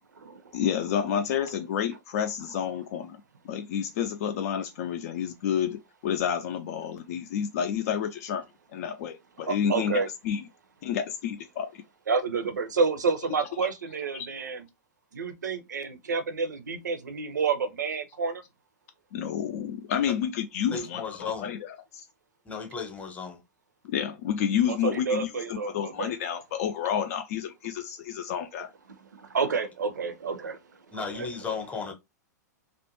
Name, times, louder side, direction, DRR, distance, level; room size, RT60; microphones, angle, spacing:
voice 1, 0.5-8.4 8.7-9.9 10.2-10.5 10.8-11.7 13.6-13.7 14.1-14.3 19.1-22.1 23.8-28.7, left 8 dB, 55° left, 0.4 m, -30 dB
voice 2, 9.4-10.1 12.1-14.6 15.1-18.4 24.7-26.1 29.1-30.6 31.0-31.3, right 5 dB, 75° right, 0.6 m, -29 dB
voice 3, 20.7-21.5 22.4-23.4 30.9-31.9, left 5 dB, 15° left, 0.8 m, -35 dB
2.5 x 2.1 x 3.0 m
figure-of-eight pair, 100°, 10 cm